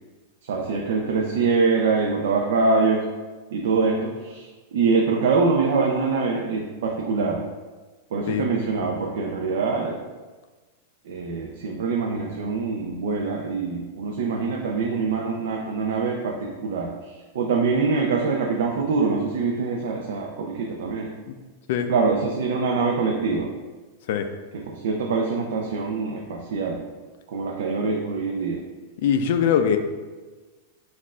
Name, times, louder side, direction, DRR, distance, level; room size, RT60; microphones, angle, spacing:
voice 1, 0.5-3.0 3.5-4.4 4.7-7.4 8.1-10.0 11.1-16.9 17.3-21.1 21.9-23.5 24.5-26.8 27.3-28.6, right 4 dB, 65° right, 0 dB, 0.5 m, -24 dB
voice 2, 29.0-29.8, left 8 dB, 50° left, 7 dB, 0.4 m, -21 dB
4.2 x 2.4 x 4.2 m, 1.3 s
supercardioid pair, 170°, 0 cm